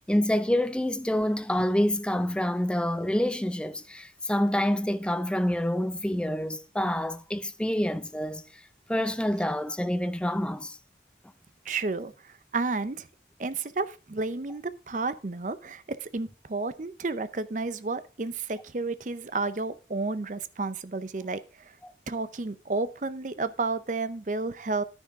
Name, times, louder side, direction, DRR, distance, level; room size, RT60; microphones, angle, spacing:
voice 1, 0.1-8.6 8.9-10.8, left 1 dB, 5° left, 0.5 m, -27 dB
voice 2, 11.7-13.1 13.4-21.7 22.1-24.8, right 3 dB, 45° right, 0.6 m, -31 dB
9.9 x 9.9 x 3.6 m
head